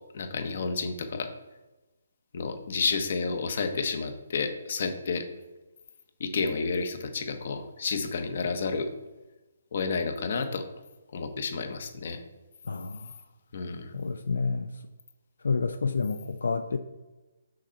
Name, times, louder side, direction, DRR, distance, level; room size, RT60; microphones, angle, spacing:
voice 1, 0.1-1.3 2.3-5.3 6.2-8.9 9.7-10.6 11.1-12.2 13.5-13.9, left 4 dB, 50° left, 7 dB, 1.0 m, -30 dB
voice 2, 12.7-13.1 13.9-14.7 15.4-16.8, left 4 dB, 85° left, 8 dB, 0.5 m, -29 dB
6.3 x 4.3 x 6.4 m, 1.1 s
hypercardioid pair, 165°, 0 cm